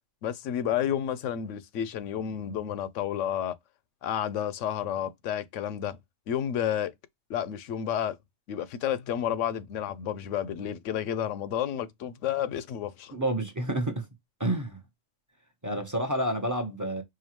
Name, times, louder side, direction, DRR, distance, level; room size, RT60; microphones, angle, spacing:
voice 1, 0.2-3.6 4.0-6.0 6.3-6.9 7.3-8.2 8.5-13.1, left 10 dB, 75° left, 0.9 m, -31 dB
voice 2, 13.1-14.1 14.4-14.8 15.6-17.0, right 1 dB, 20° right, 0.7 m, -29 dB
4.9 x 2.3 x 2.9 m
omnidirectional pair, 1.3 m